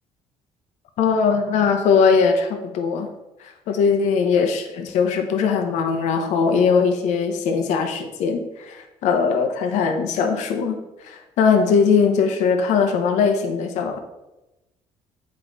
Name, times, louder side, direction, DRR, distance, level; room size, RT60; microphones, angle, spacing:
voice 1, 1.0-3.1 3.7-10.8 11.0-14.0, left 5 dB, 80° left, 5 dB, 0.9 m, -20 dB
8.2 x 4.8 x 3.9 m, 0.98 s
cardioid pair, 110°, 12 cm